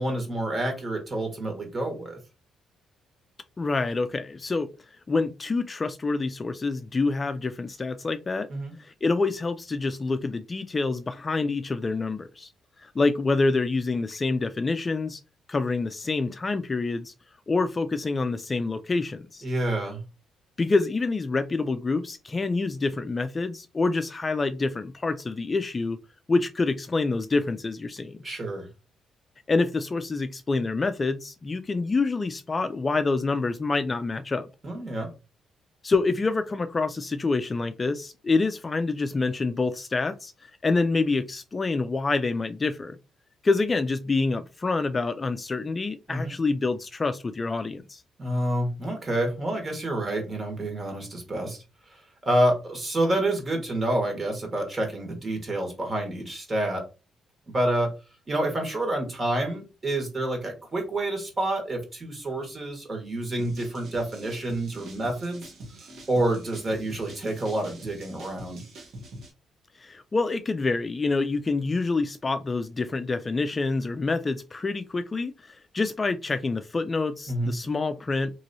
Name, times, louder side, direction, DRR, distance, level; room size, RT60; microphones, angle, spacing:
voice 1, 0.0-2.2 8.5-8.7 19.4-20.0 28.2-28.7 34.6-35.1 46.1-46.3 48.2-51.6 51.9-56.8 57.5-57.9 58.3-65.5 66.1-68.6 77.3-77.5, right 1 dB, 30° right, 2 dB, 1.5 m, -28 dB
voice 2, 3.6-4.7 5.1-8.5 8.8-12.5 12.8-15.2 15.5-17.1 17.5-19.4 20.6-26.0 26.3-28.2 29.5-34.5 35.8-40.3 40.6-43.0 43.4-48.0 69.8-78.3, left 3 dB, 30° left, 9 dB, 0.3 m, -27 dB
sound 1, 63.4-69.3, right 1 dB, 65° right, 1.0 m, -44 dB
3.0 x 2.8 x 2.7 m, 0.29 s
cardioid pair, 90°, 0 cm